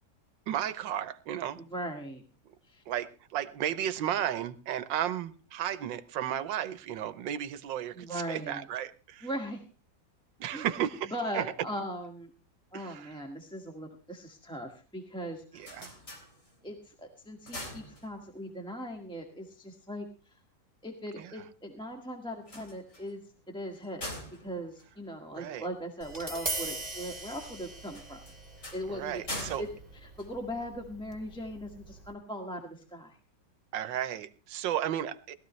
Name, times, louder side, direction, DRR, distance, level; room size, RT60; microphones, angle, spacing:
voice 1, 0.5-1.6 2.9-9.3 10.4-11.5 12.7-13.2 15.5-15.9 21.2-21.3 25.3-25.7 28.9-29.6 33.7-35.4, right 10 dB, 85° right, 13 dB, 1.5 m, -34 dB
voice 2, 1.6-2.2 2.6-2.8 7.9-8.7 9.2-9.6 10.5-10.7 11.1-12.3 12.7-16.0 16.6-20.3 20.8-23.2 23.5-24.1 24.4-28.2 28.7-29.2 29.6-29.7 30.0-33.2, equal, 5° left, 2 dB, 1.7 m, -39 dB
sound 1, 15.3-16.8 17.2-18.5 22.3-25.8 27.9-30.9, left 1 dB, 45° left, 4.0 m, -44 dB
Tap, 26.0-32.1, right 2 dB, 20° right, 2.2 m, -41 dB
20.0 x 13.5 x 3.2 m, 0.34 s
omnidirectional pair, 2.0 m